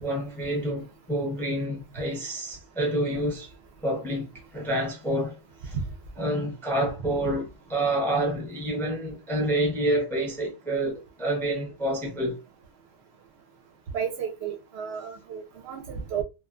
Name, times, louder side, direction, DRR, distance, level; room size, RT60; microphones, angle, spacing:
voice 1, 0.0-3.5 3.8-5.3 5.6-5.8 6.2-12.4, right 1 dB, 5° left, 0.5 m, -28 dB
voice 2, 13.9-16.2, right 7 dB, 65° right, 0.8 m, -32 dB
2.5 x 2.2 x 2.3 m
omnidirectional pair, 1.2 m